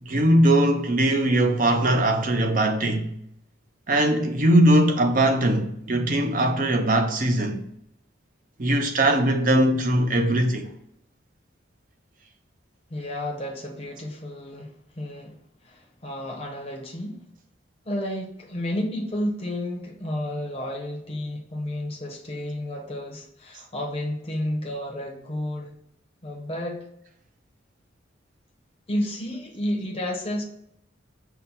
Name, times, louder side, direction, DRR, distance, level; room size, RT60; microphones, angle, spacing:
voice 1, 0.0-3.1 3.9-7.6 8.6-10.7, right 1 dB, 45° right, 0.6 m, -20 dB
voice 2, 12.9-17.2 17.9-25.8 26.2-26.9 28.9-30.4, left 1 dB, 30° left, 0.7 m, -31 dB
5.8 x 2.1 x 4.0 m
head